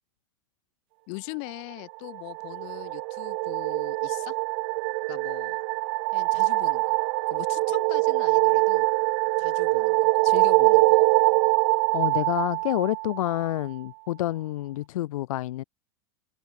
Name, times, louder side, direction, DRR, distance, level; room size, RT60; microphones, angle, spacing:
voice 1, 1.1-4.4 5.1-5.6 6.1-7.0 7.3-8.9 9.4-11.0, left 40 dB or more, 55° left, 2.5 m, -41 dB
sound 1, 2.0-13.5, right 30 dB, 55° right, 0.4 m, -23 dB
voice 2, 11.9-15.6, left 15 dB, 80° left, 0.4 m, -28 dB
hypercardioid pair, 110°, 17 cm